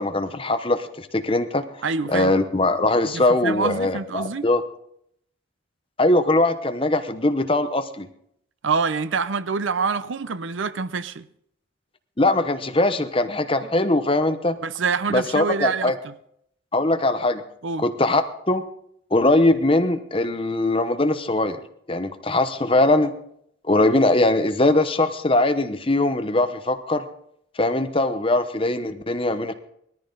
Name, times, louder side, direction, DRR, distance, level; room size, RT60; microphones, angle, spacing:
voice 1, 0.0-1.6 2.1-4.6 6.0-8.1 12.2-14.6 15.1-15.9 16.7-17.4 17.8-18.2 18.5-18.6 19.1-21.6 21.9-23.1 23.6-27.0 27.6-29.5, left 2 dB, 25° left, 0.9 m, -21 dB
voice 2, 1.8-2.3 3.1-4.5 8.6-11.3 14.6-16.1 17.6-17.9, right 5 dB, 75° right, 0.6 m, -26 dB
19.5 x 14.0 x 3.9 m
head